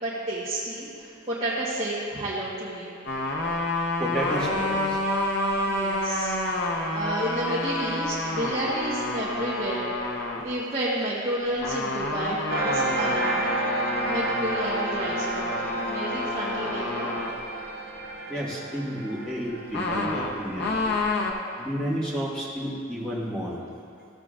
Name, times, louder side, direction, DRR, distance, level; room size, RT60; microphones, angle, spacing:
voice 1, 0.0-3.0 5.7-9.9 10.4-13.6 14.1-17.2, right 1 dB, 30° right, -9 dB, 1.2 m, -31 dB
sound 1, 3.1-10.4 11.6-17.3 19.7-21.3, left 2 dB, 55° left, 0.8 m, -29 dB
voice 2, 4.0-5.0 18.3-20.9 21.6-23.6, equal, 5° left, -6 dB, 1.5 m, -31 dB
sound 2, 12.5-21.5, right 2 dB, 50° right, 0.9 m, -31 dB
14.5 x 7.6 x 2.5 m, 2.4 s
head